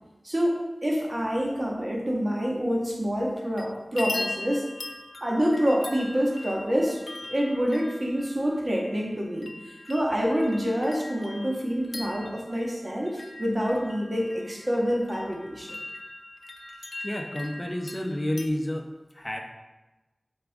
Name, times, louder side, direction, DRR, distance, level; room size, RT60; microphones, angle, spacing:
voice 1, 0.2-4.7 5.2-7.0 7.3-15.8, equal, 40° right, -2 dB, 1.7 m, -27 dB
sound 1, 3.3-3.7 4.0-18.5, left 2 dB, 80° left, 0.5 m, -40 dB
voice 2, 17.0-18.9 19.2-19.4, left 1 dB, 25° left, 3 dB, 0.9 m, -30 dB
7.5 x 4.9 x 3.6 m, 1.1 s
wide cardioid pair, 50°, 0 cm